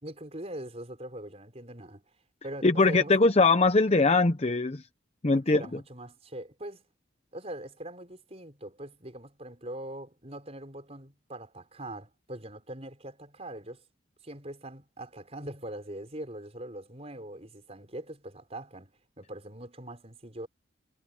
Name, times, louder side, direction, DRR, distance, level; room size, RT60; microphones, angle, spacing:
voice 1, 0.0-2.1 2.4-3.1 5.3-6.8 7.3-13.8 14.2-20.5, right 1 dB, 30° right, 5.3 m, -42 dB
voice 2, 2.6-4.8 5.2-5.6, left 3 dB, 30° left, 0.7 m, -22 dB
head